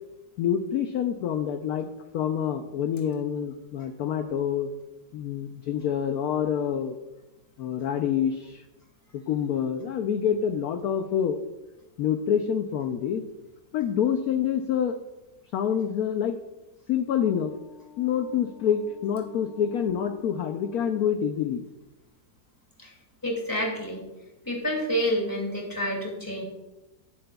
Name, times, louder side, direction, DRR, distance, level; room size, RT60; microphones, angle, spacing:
voice 1, 0.4-1.9 2.1-4.7 5.1-7.0 7.6-8.6 9.1-11.4 12.0-13.2 13.7-15.0 15.5-16.4 16.9-21.6, left 8 dB, 65° left, 6 dB, 1.0 m, -27 dB
voice 2, 23.2-24.0 24.4-26.4, equal, 10° left, -1 dB, 2.3 m, -28 dB
17.5 x 7.7 x 2.3 m, 1.0 s
omnidirectional pair, 2.0 m